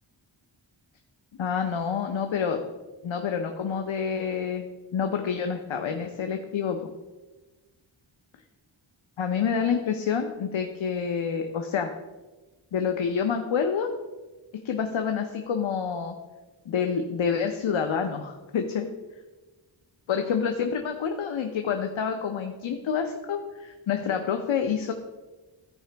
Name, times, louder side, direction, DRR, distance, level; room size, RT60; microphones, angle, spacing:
voice 1, 1.4-2.6 3.0-4.7 4.9-6.9 9.2-11.9 12.7-13.9 14.6-16.1 16.7-18.9 20.1-24.9, left 6 dB, 75° left, 5 dB, 0.8 m, -28 dB
14.5 x 4.9 x 3.4 m, 1.2 s
wide cardioid pair, 100°, 47 cm